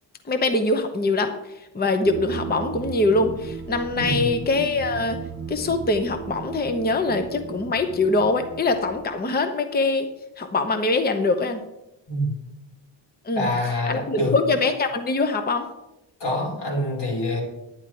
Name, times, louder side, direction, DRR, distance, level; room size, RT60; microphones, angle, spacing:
voice 1, 0.3-1.3 1.7-5.2 5.5-10.1 10.4-11.6 13.2-13.5 13.9-15.7, left 3 dB, 20° left, 7 dB, 0.8 m, -23 dB
sound 1, 2.0-9.2, right 7 dB, 35° right, 0.5 m, -36 dB
voice 2, 4.0-4.3 12.1-12.4 13.3-14.4 16.2-17.4, left 1 dB, 65° left, -1 dB, 4.2 m, -26 dB
11.0 x 9.8 x 4.5 m, 0.91 s
cardioid pair, 140°, 45 cm